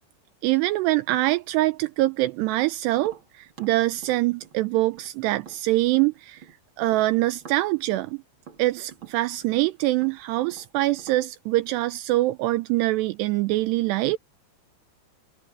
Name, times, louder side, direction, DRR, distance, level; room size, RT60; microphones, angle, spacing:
voice 1, 0.4-6.4 6.8-8.2 8.6-14.2, right 18 dB, 85° right, 2.8 m, -24 dB
Tap, 2.9-6.6 6.9-11.2, right 6 dB, 35° right, 3.0 m, -49 dB
omnidirectional pair, 4.9 m